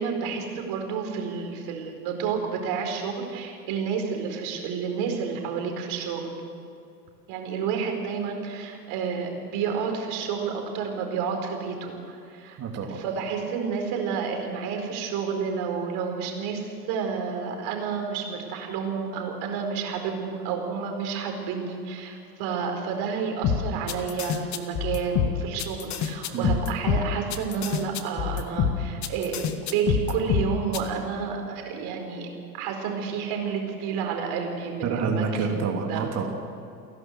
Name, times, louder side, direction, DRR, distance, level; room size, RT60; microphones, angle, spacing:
voice 1, 0.0-6.3 7.3-12.6 12.9-32.3 32.5-35.6 35.9-36.1, right 6 dB, 50° right, 3 dB, 4.6 m, -30 dB
voice 2, 12.6-13.0 26.3-26.6 34.8-36.3, right 5 dB, 30° right, 2 dB, 3.0 m, -28 dB
sound 1, 23.4-30.8, left 7 dB, 35° left, 1.7 m, -26 dB
29.5 x 11.5 x 7.9 m, 2.5 s
hypercardioid pair, 90°, 50 cm